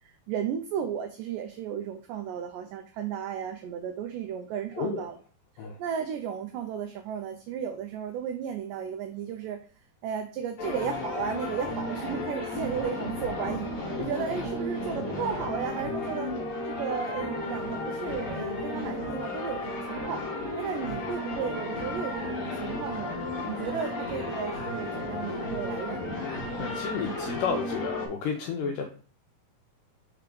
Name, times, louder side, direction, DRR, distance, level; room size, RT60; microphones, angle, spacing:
voice 1, 0.0-5.2 5.8-9.6 10.0-13.7 14.0-16.3 16.6-20.3 20.6-23.1 23.5-26.2, right 8 dB, 90° right, 7 dB, 1.9 m, -34 dB
sound 1, 10.6-28.1, left 2 dB, 55° left, 1.6 m, -33 dB
voice 2, 26.6-29.0, left 5 dB, 85° left, 3 dB, 1.9 m, -32 dB
5.6 x 3.5 x 5.1 m, 0.42 s
omnidirectional pair, 4.4 m